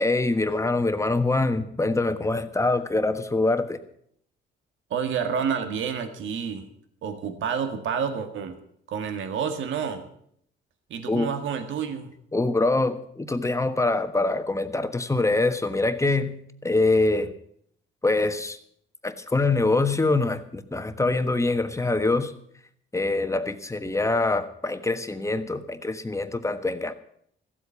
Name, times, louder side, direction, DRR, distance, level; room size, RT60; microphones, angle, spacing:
voice 1, 0.0-3.8 11.1-11.3 12.3-16.3 16.6-17.3 18.0-18.6 19.0-22.3 22.9-26.9, left 2 dB, 15° left, 9 dB, 1.3 m, -24 dB
voice 2, 4.9-6.7 7.0-8.6 8.9-10.1 10.9-12.1, right 7 dB, 75° right, 8 dB, 1.7 m, -29 dB
15.0 x 8.1 x 8.4 m, 0.67 s
cardioid pair, 90°, 20 cm